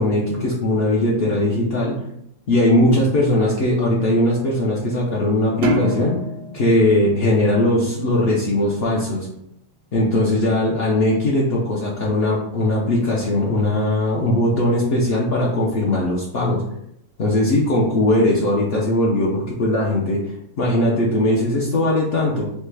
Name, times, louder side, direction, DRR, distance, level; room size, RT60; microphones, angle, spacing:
voice 1, 0.0-1.9 2.5-6.2 6.5-9.3 9.9-16.6 17.2-22.5, left 1 dB, 60° left, -4 dB, 0.7 m, -19 dB
sound 1, 5.6-8.2, equal, 65° right, 0.7 m, -27 dB
3.2 x 2.2 x 3.2 m, 0.75 s
omnidirectional pair, 1.3 m